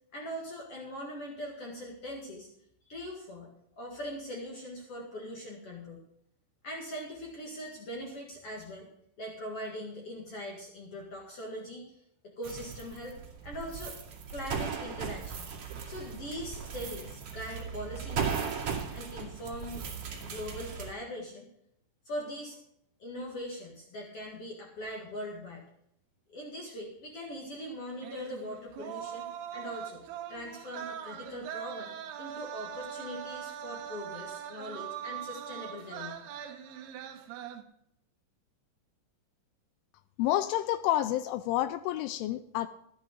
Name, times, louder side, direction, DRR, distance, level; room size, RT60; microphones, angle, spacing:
voice 1, 0.1-2.5 2.9-6.0 6.6-8.9 9.2-12.0 12.4-13.2 13.4-14.0 14.3-15.5 15.9-18.6 18.9-19.8 20.2-21.5 22.0-22.6 23.0-25.7 26.3-30.0 30.3-36.2, equal, 65° left, -1 dB, 1.4 m, -41 dB
sound 1, 12.4-20.9, right 6 dB, 50° right, 3.0 m, -37 dB
sound 2, 28.0-37.6, right 10 dB, 75° right, 2.4 m, -41 dB
voice 2, 40.2-42.7, left 13 dB, 85° left, 12 dB, 2.9 m, -29 dB
13.5 x 11.5 x 3.9 m, 0.74 s
omnidirectional pair, 5.8 m